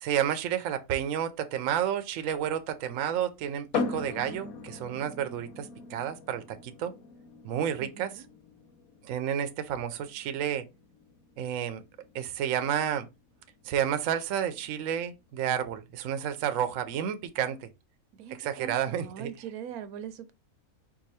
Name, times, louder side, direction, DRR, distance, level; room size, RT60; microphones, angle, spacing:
voice 1, 0.0-6.9 7.4-8.2 9.0-10.6 11.4-11.8 12.1-13.1 13.6-17.7 18.3-19.3, right 9 dB, 70° right, 0.9 m, -31 dB
sound 1, 3.7-17.2, left 4 dB, 80° left, 1.3 m, -41 dB
voice 2, 7.8-8.3 18.1-20.3, right 9 dB, 90° right, 1.2 m, -42 dB
4.8 x 2.6 x 4.0 m
omnidirectional pair, 1.5 m